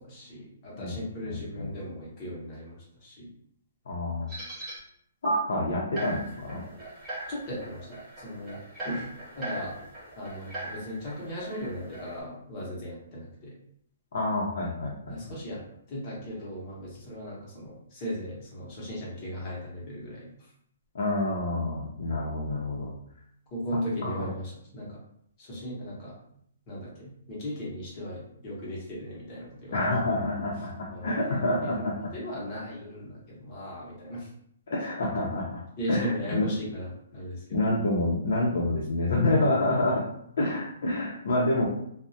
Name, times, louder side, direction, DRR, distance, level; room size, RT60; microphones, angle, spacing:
voice 1, 0.0-3.3 7.3-9.1 9.4-9.8 10.2-13.5 15.1-15.6 15.9-20.5 23.5-25.0 25.4-26.1 26.7-29.9 30.9-31.2 31.6-34.3 35.8-37.6 39.3-39.4, equal, 25° left, -6 dB, 0.8 m, -37 dB
voice 2, 1.3-1.7 3.9-4.3 5.2-6.6 14.1-15.2 20.9-22.9 24.0-24.2 29.7-32.0 34.7-35.5 35.9-36.5 37.5-40.0 40.4-41.6, left 2 dB, 60° left, -4 dB, 0.5 m, -28 dB
sound 1, 4.3-4.8 5.2-5.4 6.0-12.2, right 2 dB, 10° right, 0.8 m, -38 dB
2.2 x 2.0 x 2.6 m, 0.71 s
hypercardioid pair, 175°, 0 cm